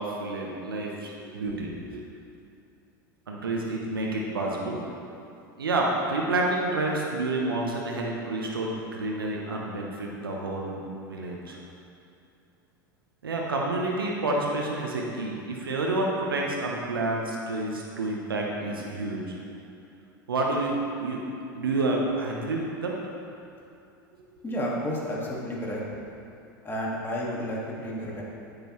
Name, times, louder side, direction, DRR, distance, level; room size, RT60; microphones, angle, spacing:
voice 1, 0.0-2.0 3.3-4.8 5.6-10.8 11.1-11.6 13.2-19.4 20.3-21.2 21.5-22.9, right 2 dB, 90° right, -1 dB, 0.9 m, -29 dB
voice 2, 24.4-25.8 26.6-28.2, equal, 20° left, -4 dB, 1.9 m, -31 dB
9.1 x 6.8 x 3.1 m, 2.7 s
hypercardioid pair, 90°, 12 cm